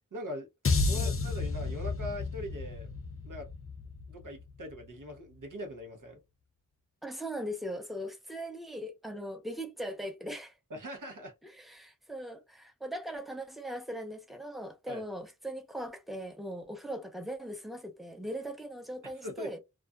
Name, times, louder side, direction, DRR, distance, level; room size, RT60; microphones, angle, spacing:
voice 1, 0.1-0.5 0.8-2.9 3.2-3.5 4.1-6.2 10.7-11.3 14.9-15.1 19.0-19.5, left 1 dB, 75° right, 0.9 m, -41 dB
sound 1, 0.6-5.0, left 3 dB, 45° left, 0.5 m, -32 dB
voice 2, 7.0-10.5 11.4-19.6, equal, ahead, 0.6 m, -40 dB
2.4 x 2.4 x 2.2 m
wide cardioid pair, 50°, 32 cm